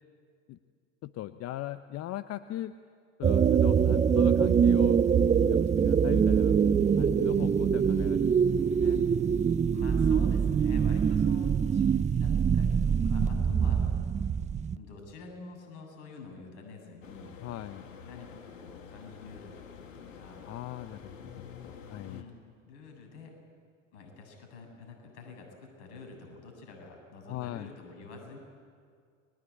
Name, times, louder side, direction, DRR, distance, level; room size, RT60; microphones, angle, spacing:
voice 1, 1.0-2.7 3.2-5.0 5.4-6.6 7.0-8.3 8.8-9.0 13.2-13.7 17.4-17.9 20.5-22.2 27.3-27.7, left 14 dB, 40° left, 11 dB, 0.9 m, -39 dB
sound 1, 3.2-14.8, right 7 dB, 20° right, 0.8 m, -24 dB
voice 2, 9.7-14.1 14.7-17.4 18.0-20.5 22.0-22.4 22.6-23.3 23.9-28.4, left 4 dB, 60° left, 3 dB, 7.9 m, -48 dB
sound 2, 17.0-22.2, left 6 dB, 80° left, 2.5 m, -48 dB
30.0 x 22.0 x 8.7 m, 2.1 s
hypercardioid pair, 85°, 38 cm